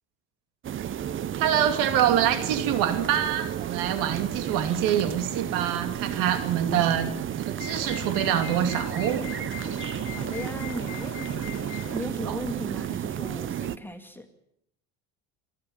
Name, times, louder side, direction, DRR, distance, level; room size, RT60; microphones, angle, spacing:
sound 1, 0.6-13.8, right 10 dB, 40° right, 0.8 m, -32 dB
voice 1, 1.4-7.1 7.4-9.3 12.2-12.4, right 10 dB, 80° right, 8 dB, 2.7 m, -25 dB
sound 2, 7.6-12.0, left 13 dB, 55° left, 3.1 m, -41 dB
voice 2, 10.2-14.3, left 1 dB, 5° left, 6 dB, 2.3 m, -38 dB
27.0 x 11.5 x 8.9 m, 0.76 s
cardioid pair, 105°, 33 cm